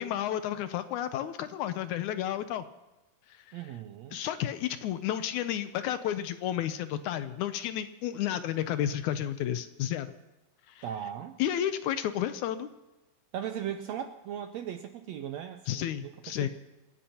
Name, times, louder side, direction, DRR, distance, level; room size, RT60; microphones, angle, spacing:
voice 1, 0.0-2.6 4.1-10.1 10.7-10.8 11.4-12.7 15.7-16.5, left 11 dB, 75° left, 11 dB, 2.0 m, -31 dB
voice 2, 3.5-4.2 10.8-11.4 13.3-16.1 16.4-16.5, right 9 dB, 75° right, 7 dB, 1.6 m, -38 dB
27.5 x 15.5 x 2.9 m, 1.0 s
omnidirectional pair, 3.7 m